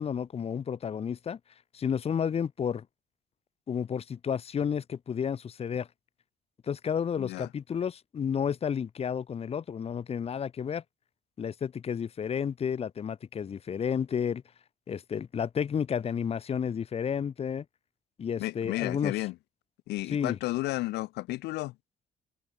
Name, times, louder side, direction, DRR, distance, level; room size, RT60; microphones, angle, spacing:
voice 1, 0.0-1.4 1.7-2.8 3.7-5.9 6.7-10.8 11.4-14.4 14.9-17.6 18.2-19.1 20.1-20.4, left 7 dB, 35° left, 1.2 m, -31 dB
voice 2, 7.2-7.5 18.4-19.4 19.9-21.7, left 19 dB, 85° left, 1.6 m, -32 dB
cardioid pair, 110°, 17 cm